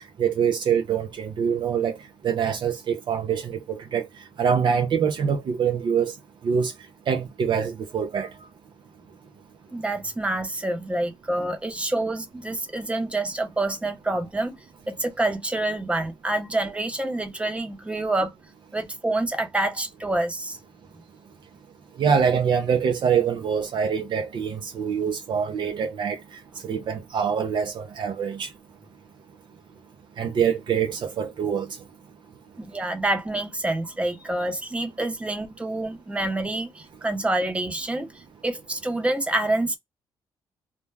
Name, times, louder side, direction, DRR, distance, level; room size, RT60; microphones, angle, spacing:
voice 1, 0.2-2.0 2.2-4.1 4.4-6.1 6.4-6.7 7.1-8.3 22.0-28.5 30.2-31.7, right 7 dB, 60° right, 0.5 m, -24 dB
voice 2, 9.7-14.6 14.9-18.3 18.7-20.6 32.6-38.1 38.4-39.8, right 2 dB, 15° right, 0.8 m, -27 dB
2.2 x 2.1 x 3.2 m
supercardioid pair, 65°, 9 cm